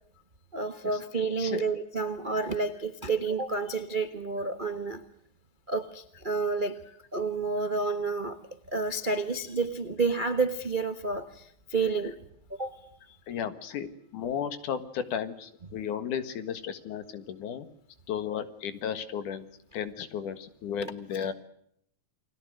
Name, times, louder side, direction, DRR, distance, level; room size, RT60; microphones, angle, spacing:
voice 1, 0.5-5.0 5.7-6.8 7.1-8.4 8.7-12.1 12.6-12.8, right 4 dB, 80° right, 0.4 m, -30 dB
voice 2, 13.3-17.7 18.1-19.5 19.7-21.3, left 8 dB, 90° left, 3.2 m, -34 dB
29.5 x 21.5 x 6.6 m
omnidirectional pair, 3.5 m